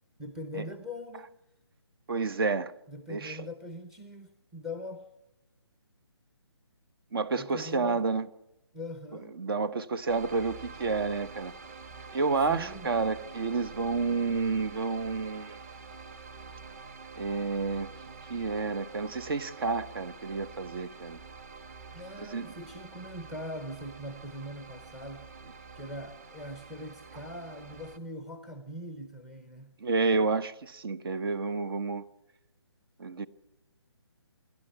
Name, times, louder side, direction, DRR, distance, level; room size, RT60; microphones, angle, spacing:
voice 1, 0.2-1.3 2.9-5.1 7.4-8.0 8.7-9.3 12.5-12.9 21.9-25.3 25.8-29.8, left 1 dB, 5° right, 0.7 m, -41 dB
voice 2, 2.1-2.7 3.1-3.4 7.1-8.3 9.4-11.5 12.1-15.6 17.2-17.9 18.3-21.2 22.2-22.5 29.8-32.0 33.0-33.3, right 4 dB, 55° right, 1.1 m, -30 dB
sound 1, 10.1-28.0, right 4 dB, 35° right, 1.6 m, -47 dB
28.0 x 12.0 x 8.5 m
hypercardioid pair, 160°, 14 cm